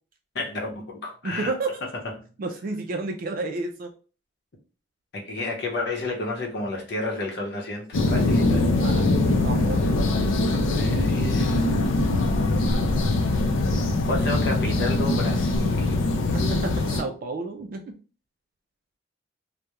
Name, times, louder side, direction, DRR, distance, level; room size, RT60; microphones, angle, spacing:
voice 1, 0.3-1.5 1.9-2.3 5.1-8.7 9.3-9.4 10.0-10.2 10.5-11.7 13.8-16.0, left 2 dB, 60° left, 0.8 m, -31 dB
voice 2, 1.2-1.8 2.4-3.9 8.8-9.0 9.4-9.9 16.3-17.9, right 3 dB, 50° right, 0.3 m, -31 dB
sound 1, 7.9-17.0, left 2 dB, 90° left, 0.4 m, -22 dB
2.3 x 2.1 x 2.9 m
head